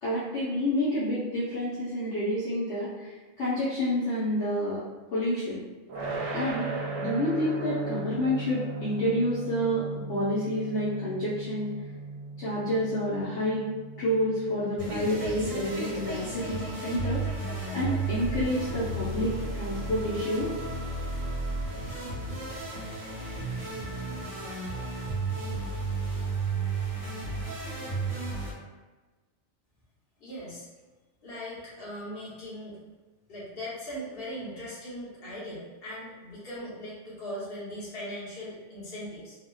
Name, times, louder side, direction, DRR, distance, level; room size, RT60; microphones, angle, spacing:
voice 1, 0.0-4.8 5.1-5.6 6.3-6.7 7.0-11.7 12.4-13.6 14.0-17.3 17.7-20.5, equal, 70° left, -10 dB, 1.0 m, -29 dB
sound 1, 5.9-16.9, right 3 dB, 75° right, 0.9 m, -38 dB
sound 2, 14.8-28.5, right 2 dB, 45° right, 0.8 m, -33 dB
voice 2, 30.2-30.7 31.2-32.8 33.3-39.4, equal, 50° left, -8 dB, 1.2 m, -39 dB
3.4 x 2.1 x 2.2 m, 1.2 s
omnidirectional pair, 1.3 m